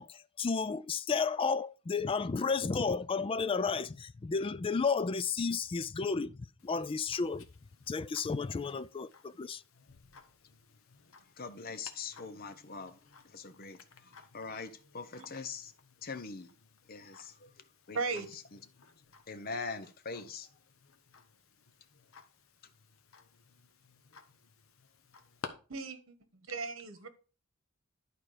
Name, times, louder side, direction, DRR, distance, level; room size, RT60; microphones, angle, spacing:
voice 1, 0.0-7.5 7.9-9.6, left 5 dB, 25° left, 0.3 m, -32 dB
Tick-tock, 6.6-25.5, left 5 dB, 75° left, 1.0 m, -56 dB
voice 2, 11.4-13.0 13.3-13.8 14.3-15.7 16.0-16.5 16.9-17.5 17.9-18.2 19.3-20.5, left 4 dB, 45° left, 0.9 m, -42 dB
voice 3, 17.9-18.3 25.7-26.1 26.5-27.1, right 4 dB, 75° right, 1.2 m, -36 dB
11.0 x 4.6 x 4.9 m
head